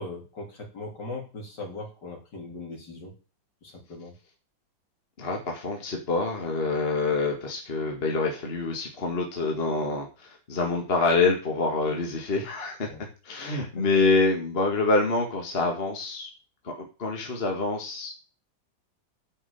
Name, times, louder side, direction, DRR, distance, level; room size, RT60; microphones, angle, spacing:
voice 1, 0.0-3.1 3.6-4.1 12.8-13.0 13.8-13.9, left 2 dB, 65° left, 1 dB, 3.7 m, -39 dB
voice 2, 5.2-16.3 16.6-16.7 17.0-18.1, left 3 dB, 30° left, 2 dB, 1.9 m, -26 dB
9.9 x 5.5 x 8.1 m, 0.35 s
omnidirectional pair, 2.0 m